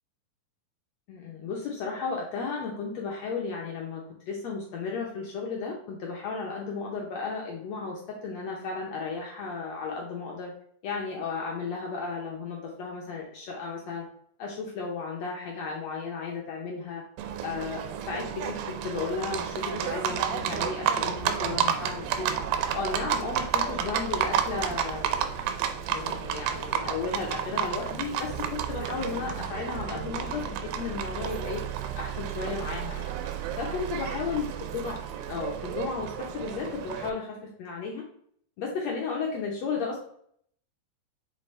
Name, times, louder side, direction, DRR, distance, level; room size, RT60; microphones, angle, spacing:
voice 1, 1.1-10.5 10.8-14.1 14.4-17.0 17.4-22.3 22.7-25.3 25.9-31.6 32.0-33.1 33.6-34.5 34.8-35.0 35.3-38.0 38.6-40.0, left 4 dB, 75° left, -1 dB, 1.5 m, -34 dB
Livestock farm animals working animals, 17.2-37.1, right 9 dB, 90° right, 2.5 m, -31 dB
6.8 x 4.2 x 3.2 m, 0.65 s
omnidirectional pair, 4.2 m